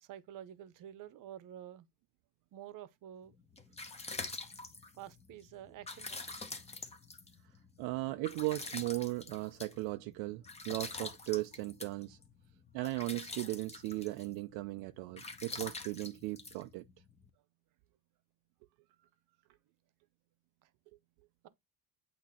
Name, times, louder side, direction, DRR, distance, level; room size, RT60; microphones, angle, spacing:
voice 1, 0.0-1.9 2.5-3.4 5.0-6.2 20.6-20.7, right 11 dB, 50° right, 0.9 m, -49 dB
sound 1, 3.3-17.3, left 3 dB, 15° left, 1.0 m, -46 dB
voice 2, 7.8-12.2 12.7-16.8, right 20 dB, 70° right, 0.5 m, -37 dB
8.5 x 2.9 x 4.2 m
cardioid pair, 125°, 40 cm